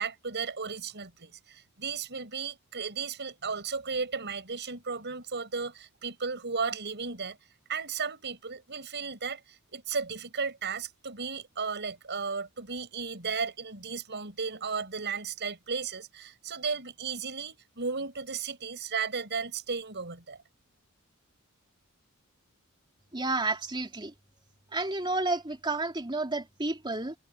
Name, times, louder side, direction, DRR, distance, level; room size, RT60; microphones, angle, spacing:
voice 1, 0.0-7.4 7.7-20.4, right 5 dB, 50° right, 7.2 m, -35 dB
voice 2, 23.1-24.1 24.7-27.1, right 2 dB, 20° right, 3.2 m, -31 dB
head